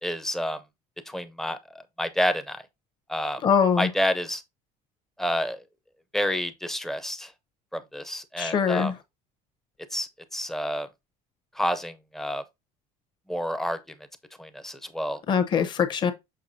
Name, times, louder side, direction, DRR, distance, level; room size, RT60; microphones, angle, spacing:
voice 1, 0.0-0.6 1.1-2.6 3.1-3.4 3.8-4.4 5.2-5.6 6.1-7.3 7.7-8.9 9.9-10.9 11.5-12.4 13.3-13.8 14.4-15.2, equal, ahead, 0.5 m, -29 dB
voice 2, 3.4-3.9 8.4-8.9 15.3-16.1, left 7 dB, 30° left, 0.8 m, -22 dB
6.6 x 5.7 x 2.7 m
cardioid pair, 170°, 15 cm